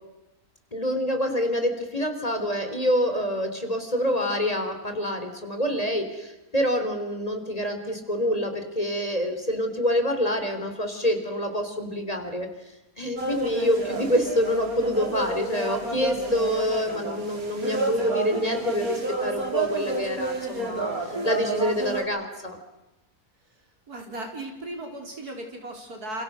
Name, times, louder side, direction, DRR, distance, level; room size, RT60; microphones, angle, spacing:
voice 1, 0.7-12.5 13.0-22.6, equal, 25° left, 6 dB, 3.8 m, -26 dB
sound 1, 13.2-22.0, right 2 dB, 70° right, 4.4 m, -30 dB
voice 2, 23.9-26.2, right 1 dB, 90° right, 3 dB, 4.8 m, -36 dB
29.0 x 27.5 x 6.3 m, 0.99 s
omnidirectional pair, 1.6 m